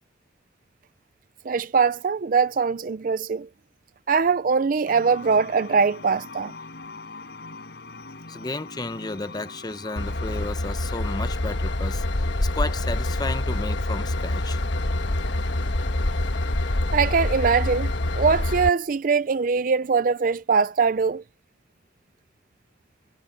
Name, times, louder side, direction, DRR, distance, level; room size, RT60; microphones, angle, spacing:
voice 1, 1.4-3.5 4.1-6.5 16.9-21.2, right 5 dB, 50° right, 0.4 m, -22 dB
sound 1, 4.9-10.5, left 3 dB, 65° left, 4.5 m, -41 dB
voice 2, 8.3-14.6, left 2 dB, 25° left, 0.7 m, -33 dB
Train / Engine, 10.0-18.7, left 1 dB, 85° left, 1.3 m, -26 dB
head